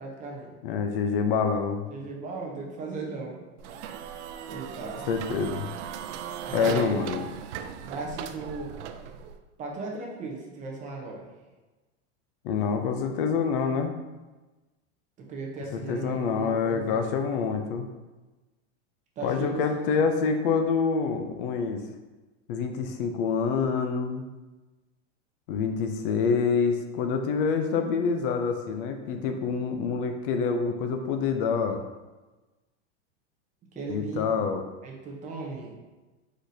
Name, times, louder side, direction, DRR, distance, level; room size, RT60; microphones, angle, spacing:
voice 1, 0.0-0.5 1.9-3.4 4.5-5.1 6.5-7.0 7.9-8.7 9.6-11.3 15.2-17.1 19.2-20.1 33.7-34.6 34.8-35.8, right 3 dB, 20° right, -1 dB, 0.6 m, -37 dB
voice 2, 0.6-1.8 5.1-5.7 6.5-7.3 12.4-13.9 15.7-17.9 19.2-21.8 22.5-24.2 25.5-31.8 33.9-34.6, left 5 dB, 50° left, 6 dB, 0.5 m, -26 dB
sound 1, 3.6-9.4, right 8 dB, 75° right, 0.5 m, -38 dB
4.7 x 4.1 x 2.7 m, 1.2 s
supercardioid pair, 155°, 36 cm